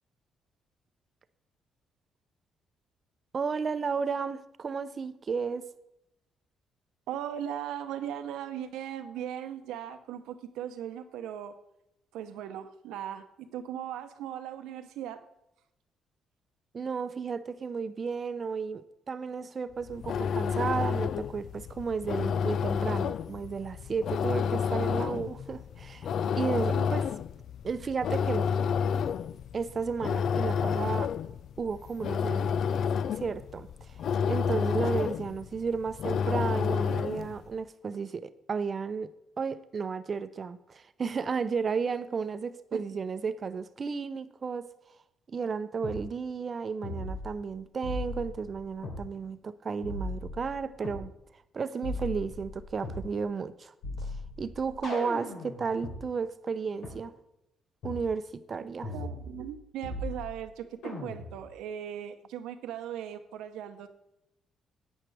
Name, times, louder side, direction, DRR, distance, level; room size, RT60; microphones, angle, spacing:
voice 1, 3.3-5.6 16.7-26.1 26.3-27.0 27.6-28.4 29.5-31.1 31.6-32.6 33.2-33.7 34.3-39.1 39.4-44.7 45.3-51.1 51.5-53.7 54.0-57.1 57.8-58.9, right 5 dB, 45° right, 0.6 m, -33 dB
voice 2, 7.1-11.5 12.1-15.2 26.7-26.9 42.7-42.8 58.6-58.7 58.9-63.9, right 10 dB, 85° right, 0.8 m, -38 dB
sound 1, 19.8-37.4, left 7 dB, 65° left, 0.3 m, -30 dB
sound 2, 45.8-46.0 46.8-47.5 47.8-49.0 49.8-51.0 51.8-53.1 53.8-56.0 56.8-56.9 57.8-58.1 58.8-59.5 59.8-60.5 60.8-61.5, left 2 dB, 85° left, 3.4 m, -38 dB
11.0 x 8.9 x 3.4 m
cardioid pair, 80°, 0 cm